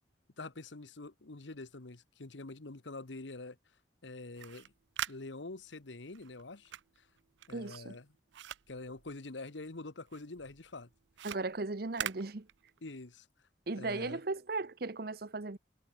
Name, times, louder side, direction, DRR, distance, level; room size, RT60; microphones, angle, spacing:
voice 1, 0.4-3.6 4.0-4.7 5.1-6.7 7.5-8.1 8.7-10.9 12.8-13.3 13.8-14.2, left 2 dB, 80° left, 1.3 m, -45 dB
sound 1, 4.2-9.8 10.1-13.0, right 10 dB, 75° right, 0.5 m, -44 dB
voice 2, 7.5-8.0 11.2-12.5 13.7-15.6, right 3 dB, 55° right, 0.9 m, -37 dB
head